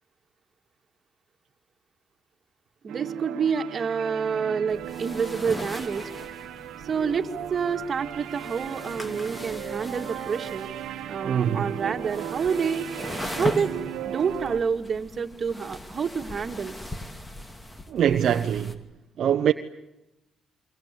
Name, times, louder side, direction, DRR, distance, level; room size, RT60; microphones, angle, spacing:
voice 1, 2.8-6.1 6.8-10.7 11.1-12.9 13.4-16.7, right 6 dB, 45° right, 2.2 m, -28 dB
sound 1, 2.9-14.6, right 10 dB, 85° right, 1.4 m, -37 dB
sound 2, 4.7-18.7, left 1 dB, 15° left, 2.7 m, -39 dB
voice 2, 11.2-11.7 17.9-18.8 19.2-19.5, right 9 dB, 65° right, 1.0 m, -23 dB
28.5 x 24.0 x 8.5 m
cardioid pair, 90°, 0 cm